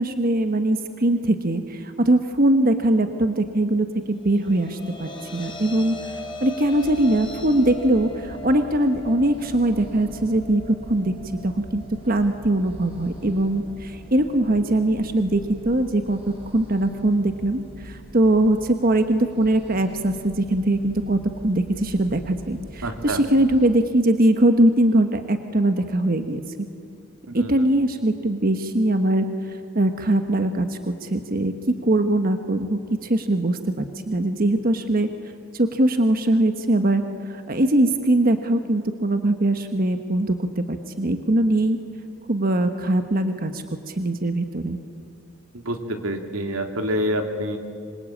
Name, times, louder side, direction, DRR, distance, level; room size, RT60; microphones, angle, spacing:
voice 1, 0.0-5.9 6.4-11.1 11.4-26.4 27.3-35.1 35.5-41.8 42.3-44.8, right 1 dB, 45° right, 7 dB, 1.2 m, -21 dB
sound 1, 4.1-16.4, left 1 dB, 20° left, 4.0 m, -41 dB
sound 2, 6.6-23.7, equal, 25° right, 5.1 m, -43 dB
voice 2, 22.8-23.2 27.3-27.5 45.6-47.6, equal, 90° right, 5 dB, 2.9 m, -27 dB
26.5 x 26.0 x 8.7 m, 2.2 s
head